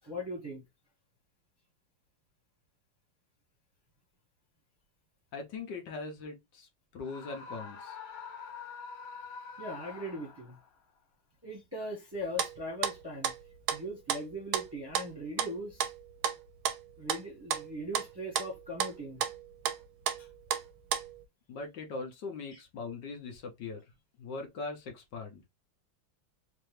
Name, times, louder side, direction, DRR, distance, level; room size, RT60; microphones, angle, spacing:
voice 1, 0.0-0.6 9.6-10.6 11.4-13.3 13.7-15.9 17.0-19.2 20.2-20.3 22.5-22.6, equal, 15° right, 1.0 m, -40 dB
voice 2, 5.3-8.0 21.5-23.8 24.2-25.4, left 4 dB, 65° left, 1.5 m, -41 dB
Screaming, 7.0-10.7, left 5 dB, 90° left, 1.8 m, -45 dB
sound 1, 12.2-21.2, right 9 dB, 85° right, 1.5 m, -33 dB
4.5 x 2.6 x 3.2 m
omnidirectional pair, 2.2 m